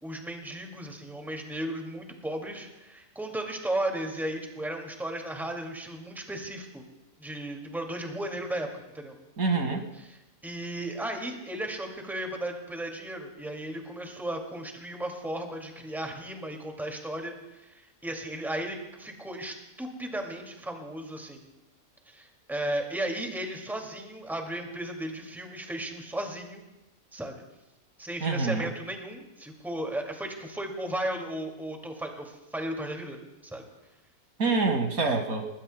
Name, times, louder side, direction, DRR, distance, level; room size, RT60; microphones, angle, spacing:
voice 1, 0.0-6.8 7.2-9.1 10.1-10.2 10.4-17.7 18.0-21.5 22.1-26.6 27.1-27.4 28.0-33.7, right 1 dB, ahead, 2 dB, 2.2 m, -35 dB
voice 2, 9.4-9.8 28.2-28.7 34.4-35.5, right 3 dB, 70° right, 4 dB, 2.3 m, -26 dB
30.0 x 20.0 x 2.2 m, 0.96 s
omnidirectional pair, 1.6 m